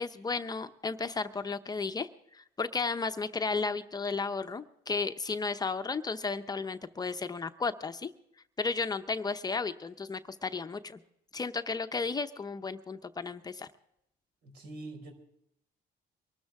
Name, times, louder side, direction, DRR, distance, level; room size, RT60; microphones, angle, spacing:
voice 1, 0.0-8.1 8.6-11.0 11.3-13.7, left 4 dB, 25° left, 9 dB, 0.7 m, -34 dB
voice 2, 14.4-15.1, right 2 dB, 75° right, 4 dB, 4.9 m, -44 dB
23.5 x 13.0 x 3.6 m, 0.77 s
cardioid pair, 110°, 17 cm